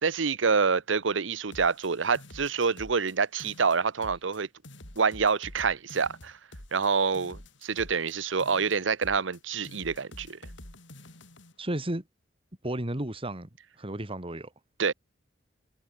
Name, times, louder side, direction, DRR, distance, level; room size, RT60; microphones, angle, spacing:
voice 1, 0.0-4.5 5.0-6.4 6.7-10.4 14.8-14.9, right 5 dB, 85° right, 0.9 m, -27 dB
sound 1, 1.5-3.1 3.4-4.4 4.6-8.1 8.4-9.4 9.6-11.5, left 1 dB, 70° left, 6.0 m, -48 dB
voice 2, 11.6-12.0 12.6-13.5 13.8-14.5, right 1 dB, 30° right, 2.5 m, -33 dB
head